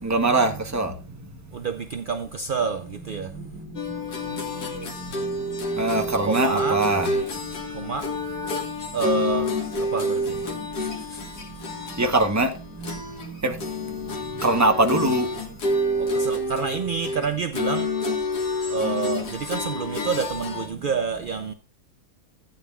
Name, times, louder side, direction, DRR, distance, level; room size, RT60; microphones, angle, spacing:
voice 1, 0.0-1.2 3.3-7.2 7.4-7.7 8.5-9.0 10.5-10.6 11.7-13.7 14.4-15.3, right 2 dB, 15° right, 0.9 m, -25 dB
voice 2, 1.5-3.3 6.3-6.8 7.7-8.1 8.9-10.5 10.8-11.2 16.0-17.9 18.7-21.5, right 5 dB, 60° right, 0.5 m, -28 dB
sound 1, 3.8-13.3 13.6-20.7, left 1 dB, 85° left, 2.1 m, -29 dB
14.5 x 9.2 x 2.4 m
omnidirectional pair, 1.7 m